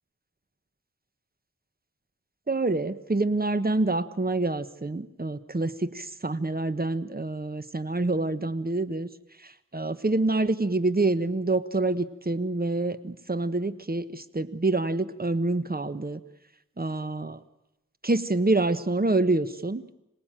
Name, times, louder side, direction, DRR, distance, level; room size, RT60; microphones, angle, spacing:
voice 1, 2.5-9.1 9.4-16.2 16.8-17.4 18.0-19.8, right 2 dB, 30° right, 13 dB, 1.2 m, -27 dB
26.5 x 18.0 x 9.0 m, 0.90 s
wide cardioid pair, 50°, 29 cm